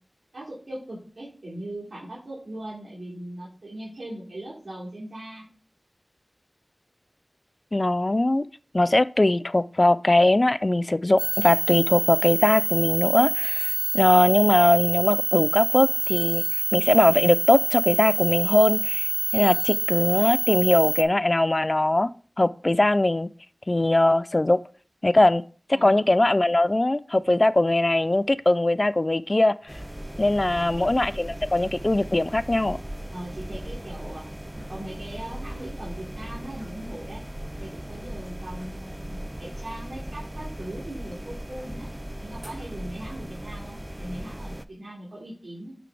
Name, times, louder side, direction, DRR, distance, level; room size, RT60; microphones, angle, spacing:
voice 1, 0.3-5.5 25.7-26.0 30.5-30.9 33.1-34.3 34.5-37.2 37.6-41.9 42.2-45.8, right 1 dB, 85° right, 2.9 m, -39 dB
voice 2, 7.7-8.4 8.7-16.4 16.7-19.1 19.3-22.1 22.4-23.3 23.7-24.6 25.0-25.4 25.8-29.7 30.2-32.8, left 2 dB, 40° left, 0.4 m, -21 dB
sound 1, 11.2-21.0, right 3 dB, 70° right, 0.6 m, -26 dB
sound 2, 29.7-44.7, right 1 dB, 15° right, 0.5 m, -38 dB
9.1 x 4.0 x 4.9 m
wide cardioid pair, 50°, 0 cm